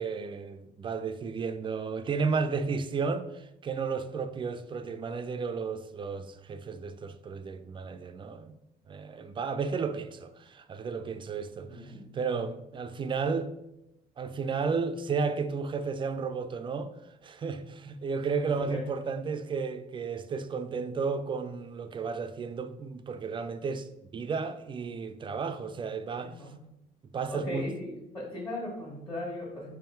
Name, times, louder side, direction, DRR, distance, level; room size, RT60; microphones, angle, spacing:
voice 1, 0.0-8.6 8.9-13.5 14.2-16.9 17.2-26.3 27.1-27.6, right 5 dB, 30° right, 0.3 m, -33 dB
voice 2, 11.6-12.0 18.4-18.8 26.1-26.5 27.3-29.7, left 1 dB, 30° left, 1.4 m, -38 dB
3.6 x 3.0 x 4.4 m
cardioid pair, 110°, 17 cm